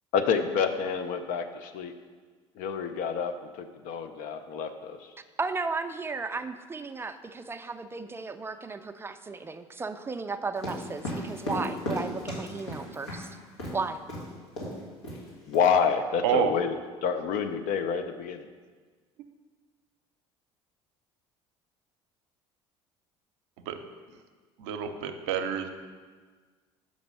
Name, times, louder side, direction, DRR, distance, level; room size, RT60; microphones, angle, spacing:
voice 1, 0.1-1.9 2.6-5.1 15.5-16.7 17.0-18.5, left 6 dB, 60° left, 9 dB, 0.6 m, -28 dB
voice 2, 5.4-13.4 13.7-14.0, right 4 dB, 15° right, 8 dB, 0.4 m, -34 dB
sound 1, 10.6-13.2 13.6-13.8 14.1-14.3 14.6-14.8 15.0-15.6, equal, 85° left, 1.8 m, -35 dB
voice 3, 24.6-25.7, right 9 dB, 75° right, 7 dB, 0.6 m, -28 dB
6.0 x 5.1 x 5.3 m, 1.5 s
hypercardioid pair, 70°, 15 cm